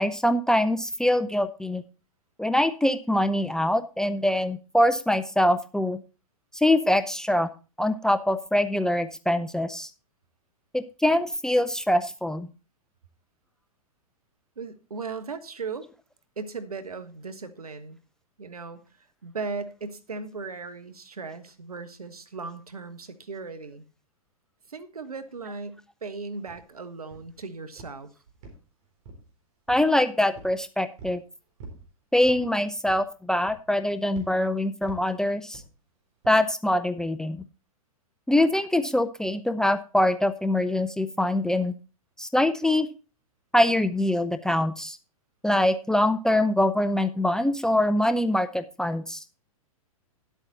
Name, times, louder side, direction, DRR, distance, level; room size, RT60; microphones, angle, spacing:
voice 1, 0.0-1.8 2.4-6.0 6.5-7.5 7.8-9.9 10.7-12.5 29.7-31.2 32.1-35.6 36.3-37.4 38.3-41.7 42.2-42.9 43.5-45.0 45.4-49.2, left 1 dB, 5° left, 0.5 m, -24 dB
voice 2, 14.6-15.9 16.4-18.0 18.4-23.9 24.7-28.1, right 4 dB, 85° right, 1.3 m, -37 dB
sound 1, 26.5-26.6 27.1-27.4 27.8-28.0 28.4-29.3 29.7-29.9 30.3-30.6 31.0-31.2 31.6-31.9 32.2-32.5 32.9-33.1 33.5-33.8 34.1-34.3 34.9-35.1 35.5-35.7 36.2-36.4, right 3 dB, 50° right, 3.9 m, -45 dB
11.5 x 8.2 x 4.0 m
figure-of-eight pair, 105°, 19 cm